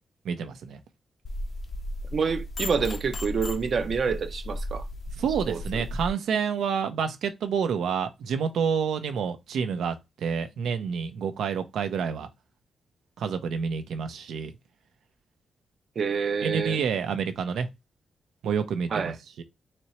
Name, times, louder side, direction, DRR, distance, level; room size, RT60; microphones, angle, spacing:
voice 1, 0.2-0.8 5.2-12.3 13.2-14.5 16.4-17.7 18.4-19.4, right 6 dB, 90° right, 0.7 m, -28 dB
sound 1, 1.2-6.1, left 1 dB, 40° left, 0.6 m, -35 dB
voice 2, 2.1-4.9 5.5-5.6 16.0-16.8 18.9-19.2, right 5 dB, 45° right, 0.6 m, -27 dB
4.1 x 2.9 x 3.1 m
wide cardioid pair, 150°, 0 cm